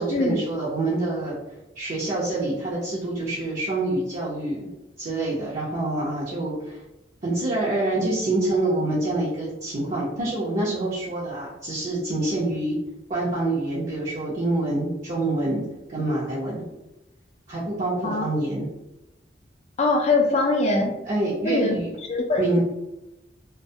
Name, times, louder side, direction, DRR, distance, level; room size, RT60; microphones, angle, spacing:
voice 1, 0.0-1.4 1.8-4.7 5.0-6.8 7.2-12.8 13.1-15.6 15.9-16.6 17.5-18.6 21.1-21.9 22.4-22.6, right 2 dB, 50° right, -9 dB, 0.6 m, -26 dB
voice 2, 19.8-21.0 21.4-21.8 22.1-22.6, left 2 dB, 40° left, 0 dB, 0.3 m, -22 dB
2.2 x 2.1 x 2.6 m, 0.95 s
head